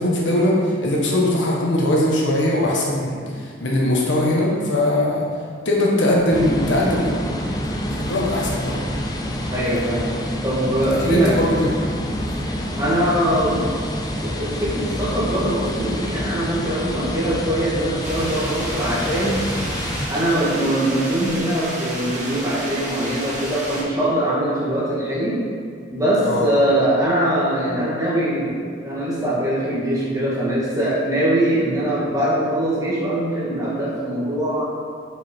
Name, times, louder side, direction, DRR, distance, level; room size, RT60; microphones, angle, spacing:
voice 1, 0.0-5.3 5.6-7.3 7.9-8.8 11.0-11.8 26.2-26.5, left 1 dB, 70° left, -3 dB, 1.4 m, -20 dB
sound 1, 6.3-20.0, equal, 20° left, 0.6 m, -27 dB
voice 2, 9.5-10.1 10.4-11.3 12.8-13.6 14.2-19.4 20.1-25.4 25.9-34.7, right 1 dB, 15° right, -8 dB, 1.9 m, -22 dB
sound 2, 18.0-23.8, right 1 dB, 40° right, 1.8 m, -31 dB
7.6 x 5.6 x 4.5 m, 2.1 s
head